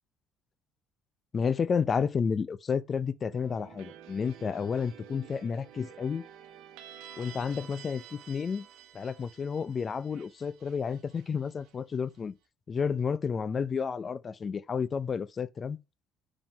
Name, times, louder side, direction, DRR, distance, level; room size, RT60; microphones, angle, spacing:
voice 1, 1.3-6.3 7.2-8.7 8.9-12.4 12.7-15.8, left 6 dB, 35° left, 0.5 m, -31 dB
sound 1, 3.3-12.2, right 9 dB, 85° right, 0.8 m, -51 dB
4.9 x 3.8 x 5.5 m
cardioid pair, 95°, 0 cm